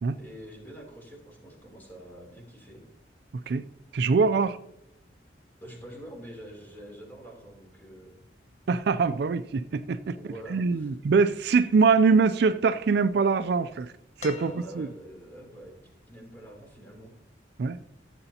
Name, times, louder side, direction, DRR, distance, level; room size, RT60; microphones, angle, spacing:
voice 1, 0.1-2.8 5.6-8.2 10.1-10.9 14.4-15.7 16.1-17.1, right 1 dB, 10° left, -1 dB, 3.2 m, -46 dB
voice 2, 3.9-4.6 8.7-10.2 10.5-13.9 14.2-14.9 17.6-17.8, right 4 dB, 60° right, 12 dB, 0.4 m, -23 dB
sound 1, 14.2-15.2 16.7-16.8, left 4 dB, 40° left, 1.1 m, -43 dB
15.0 x 7.8 x 2.8 m, 0.79 s
head